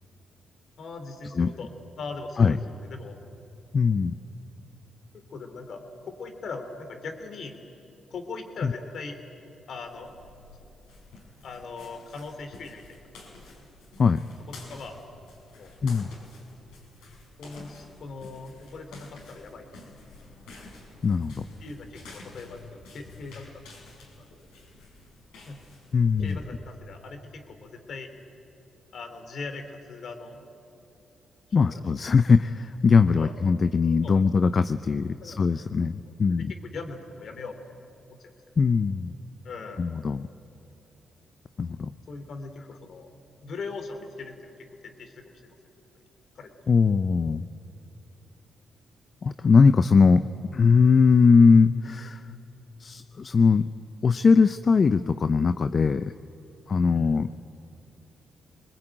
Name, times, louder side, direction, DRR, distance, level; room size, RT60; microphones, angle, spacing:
voice 1, 0.8-3.2 5.1-7.6 8.1-9.2 9.7-10.1 11.4-13.0 14.5-15.0 15.5-15.7 17.4-19.7 21.6-23.5 24.2-24.3 25.5-25.6 26.2-28.1 28.9-30.4 31.6-31.8 33.2-33.3 34.0-34.2 35.2-35.5 36.0-37.6 38.2-38.3 39.4-39.9 42.1-43.1 43.4-44.5 44.8-45.5 46.3-46.5 56.7-57.2, left 4 dB, 65° left, 6 dB, 3.2 m, -40 dB
voice 2, 3.7-4.2 8.6-8.7 14.0-14.2 15.8-16.1 21.0-21.4 25.9-26.4 31.5-36.5 38.6-39.1 39.8-40.3 41.6-41.9 46.7-47.4 49.2-50.2 50.5-52.2 52.8-53.7 54.0-56.1 56.7-57.3, left 5 dB, 50° left, 11 dB, 0.6 m, -20 dB
sound 1, 9.8-26.3, left 3 dB, 85° left, 6.2 m, -49 dB
24.0 x 20.5 x 9.0 m, 3.0 s
supercardioid pair, 55°, 0 cm